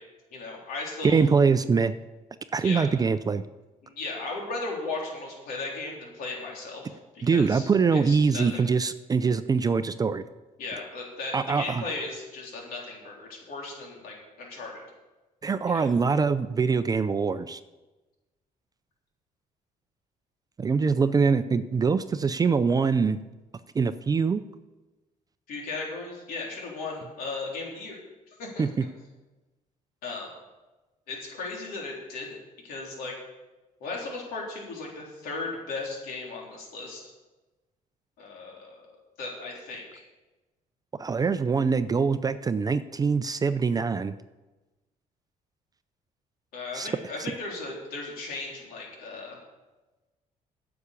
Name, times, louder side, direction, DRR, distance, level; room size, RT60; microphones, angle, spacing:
voice 1, 0.3-1.2 2.6-2.9 3.8-8.6 10.6-14.8 15.7-15.9 25.5-28.0 28.3-28.6 30.0-30.3 31.1-32.4 32.6-33.1 33.8-37.1 38.2-40.1 46.5-49.4, left 3 dB, 90° left, -2 dB, 3.7 m, -36 dB
voice 2, 1.0-1.9 2.5-3.4 7.2-10.2 11.3-11.8 15.4-17.6 20.6-23.2 23.7-24.4 28.6-28.7 41.0-44.1 46.7-46.9, right 5 dB, 25° right, 12 dB, 0.4 m, -23 dB
10.0 x 7.0 x 8.3 m, 1.1 s
cardioid pair, 120°, 15 cm